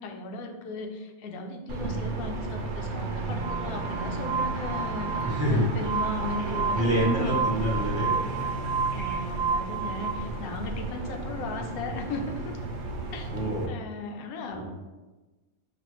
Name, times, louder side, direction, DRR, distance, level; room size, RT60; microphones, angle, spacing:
voice 1, 0.0-7.5 8.9-12.6 13.1-14.6, left 3 dB, 90° left, 3 dB, 1.1 m, -37 dB
sound 1, 1.7-13.7, right 3 dB, 70° right, 0.9 m, -34 dB
Race car auto racing / Alarm, 2.9-9.2, right 1 dB, 35° left, 0.7 m, -39 dB
Glass, 3.4-10.1, right 5 dB, 85° right, 0.4 m, -31 dB
voice 2, 5.2-5.7 6.4-8.1 13.3-13.6 14.5-14.6, equal, 15° right, -6 dB, 0.6 m, -27 dB
5.1 x 2.4 x 3.0 m, 1.2 s
omnidirectional pair, 1.5 m